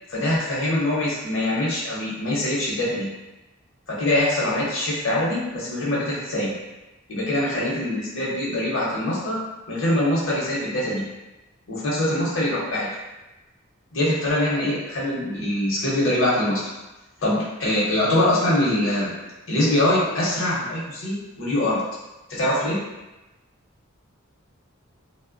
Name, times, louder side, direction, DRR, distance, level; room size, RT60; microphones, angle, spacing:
voice 1, 0.1-3.1 3.9-6.5 7.1-9.4 9.7-11.0 11.7-12.9 13.9-16.6 17.2-19.1 19.5-21.8 22.3-22.8, left 1 dB, 65° left, -7 dB, 0.7 m, -23 dB
2.9 x 2.0 x 2.4 m, 1.0 s
head